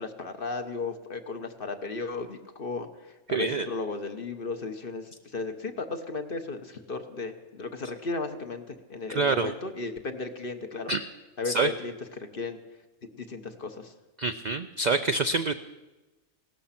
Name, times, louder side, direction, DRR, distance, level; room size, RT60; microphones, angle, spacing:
voice 1, 0.0-10.9 11.4-12.6 13.1-13.9, left 3 dB, 45° left, 7 dB, 1.3 m, -35 dB
voice 2, 3.3-3.7 9.1-9.5 10.9-11.0 11.5-11.7 14.2-15.6, right 3 dB, 55° right, 9 dB, 0.5 m, -26 dB
17.0 x 13.0 x 5.8 m, 1.1 s
omnidirectional pair, 1.4 m